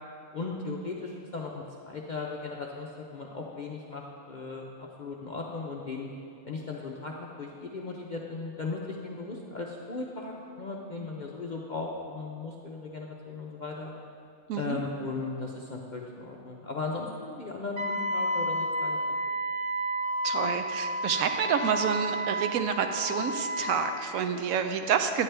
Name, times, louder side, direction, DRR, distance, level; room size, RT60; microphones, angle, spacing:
voice 1, 0.3-6.1 6.4-13.9 14.5-19.0, left 3 dB, 55° left, -1 dB, 0.5 m, -37 dB
Wind instrument woodwind instrument, 17.8-24.0, equal, 60° right, 1.0 m, -31 dB
voice 2, 20.2-25.2, right 7 dB, 75° right, 7 dB, 1.0 m, -28 dB
9.6 x 9.4 x 3.3 m, 2.5 s
omnidirectional pair, 1.5 m